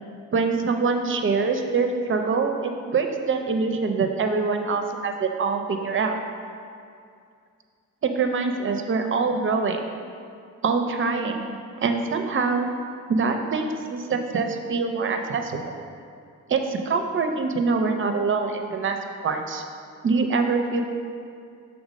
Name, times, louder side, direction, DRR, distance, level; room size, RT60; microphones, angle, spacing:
voice 1, 0.3-6.2 8.0-9.9 10.6-12.7 13.1-15.7 16.5-19.0 19.2-19.6 20.0-20.8, right 4 dB, 40° right, 5 dB, 0.5 m, -24 dB
6.3 x 3.4 x 5.1 m, 2.3 s
wide cardioid pair, 160°, 30 cm